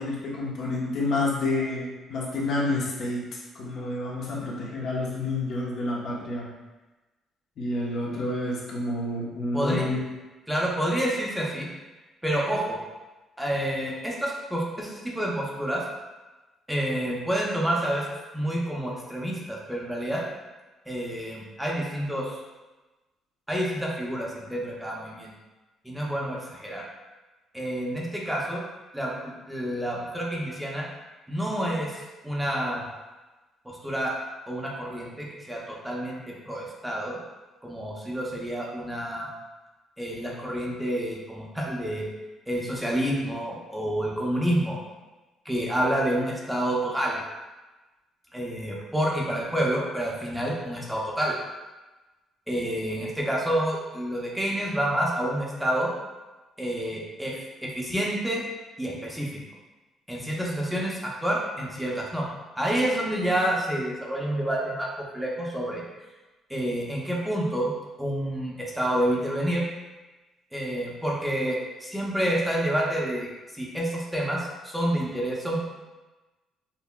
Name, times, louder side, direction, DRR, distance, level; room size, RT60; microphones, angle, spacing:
voice 1, 0.0-6.5 7.6-10.0, left 2 dB, 60° left, -3 dB, 0.8 m, -29 dB
voice 2, 10.5-11.7 12.2-12.8 13.4-15.8 16.7-18.1 18.3-20.2 20.9-22.3 23.5-25.3 25.8-26.8 27.5-28.6 28.9-30.9 31.3-32.8 33.7-34.2 34.5-37.2 37.6-39.3 40.0-42.0 42.5-44.8 45.4-47.2 48.3-51.4 52.5-55.9 56.6-58.4 58.8-59.4 60.1-62.3 62.6-65.8 66.5-67.7 68.0-69.6 70.5-73.3 73.5-75.6, right 1 dB, 5° right, -3 dB, 0.6 m, -28 dB
5.6 x 2.1 x 2.2 m, 1.1 s
cardioid pair, 125°, 0 cm